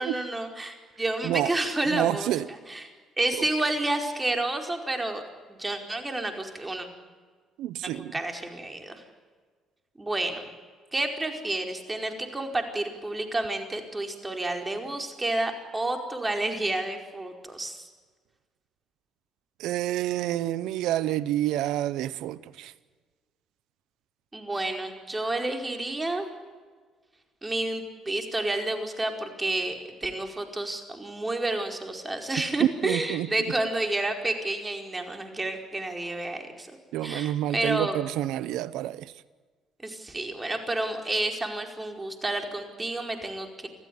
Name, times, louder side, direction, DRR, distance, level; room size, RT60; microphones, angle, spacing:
voice 1, 0.0-2.9 3.2-5.2 5.5-6.9 7.8-9.0 10.0-10.4 10.9-17.8 24.3-26.3 27.4-38.0 39.8-43.7, right 2 dB, 20° right, 4.8 m, -30 dB
voice 2, 1.9-2.5 7.6-8.1 19.6-22.7 32.6-33.3 36.9-39.1, right 13 dB, 75° right, 0.7 m, -28 dB
25.5 x 15.5 x 9.7 m
supercardioid pair, 70°, 0 cm